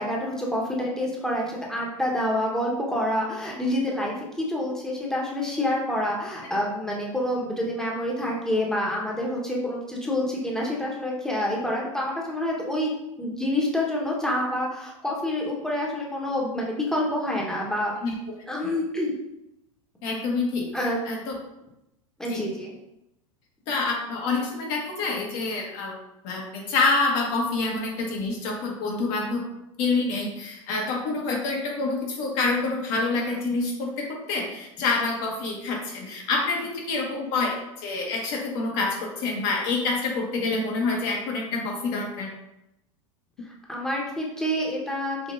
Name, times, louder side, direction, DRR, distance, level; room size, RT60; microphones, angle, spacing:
voice 1, 0.0-12.9 13.2-17.9 18.5-19.1 20.7-21.0 22.2-22.7 43.5-45.3, left 1 dB, 5° left, -2 dB, 1.1 m, -27 dB
voice 2, 20.0-20.6 21.0-21.3 22.2-22.4 23.7-26.0 26.2-29.5 29.8-42.3, left 3 dB, 55° left, -1 dB, 1.4 m, -27 dB
5.5 x 3.0 x 2.6 m, 0.87 s
hypercardioid pair, 95°, 17 cm